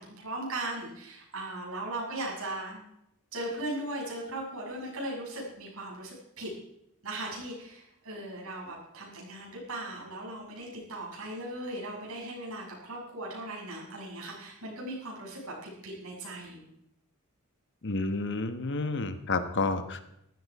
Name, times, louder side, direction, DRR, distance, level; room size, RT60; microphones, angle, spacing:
voice 1, 0.0-2.8 3.3-6.5 7.0-16.6, right 1 dB, 75° right, -3 dB, 7.1 m, -38 dB
voice 2, 17.8-20.1, left 3 dB, 55° left, 9 dB, 1.3 m, -30 dB
14.5 x 12.5 x 4.9 m, 0.79 s
head